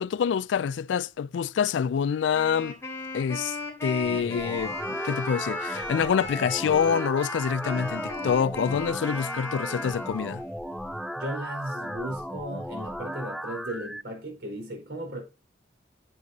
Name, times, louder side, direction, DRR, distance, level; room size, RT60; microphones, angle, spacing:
voice 1, 0.0-2.8 3.1-10.4, left 7 dB, 90° left, 0.3 m, -26 dB
Wind instrument woodwind instrument, 2.3-10.5, left 2 dB, 15° left, 3.2 m, -36 dB
sound 1, 4.0-14.0, equal, ahead, 0.3 m, -36 dB
voice 2, 11.1-15.2, right 1 dB, 65° right, 4.6 m, -36 dB
10.0 x 8.1 x 2.7 m
head